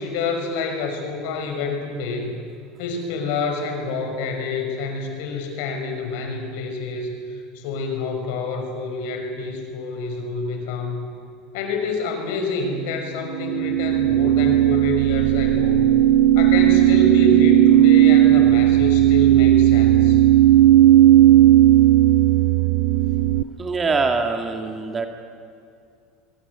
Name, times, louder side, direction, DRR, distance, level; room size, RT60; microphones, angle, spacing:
voice 1, 0.0-2.3 2.8-7.1 7.5-11.1 11.5-15.9 16.4-20.2, left 3 dB, 80° left, 4 dB, 5.9 m, -27 dB
sound 1, 13.3-23.4, right 13 dB, 65° right, 0.9 m, -15 dB
voice 2, 23.6-25.1, right 4 dB, 20° right, 5 dB, 2.4 m, -23 dB
23.5 x 23.5 x 8.4 m, 2.4 s
cardioid pair, 140°, 0 cm